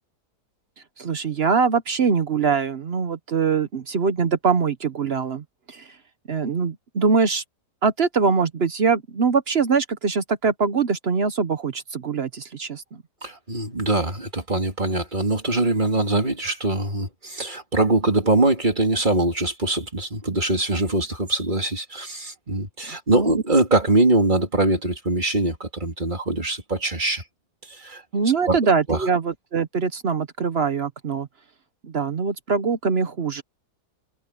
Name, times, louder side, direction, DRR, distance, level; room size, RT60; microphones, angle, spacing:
voice 1, 1.0-6.0 6.3-7.4 7.8-13.0 22.9-23.3 28.1-31.3 31.8-33.4, right 5 dB, 45° right, 1.0 m, -23 dB
voice 2, 13.2-27.2 27.7-28.0 28.5-28.6 28.9-29.1, right 2 dB, 30° right, 3.3 m, -22 dB
omnidirectional pair, 1.7 m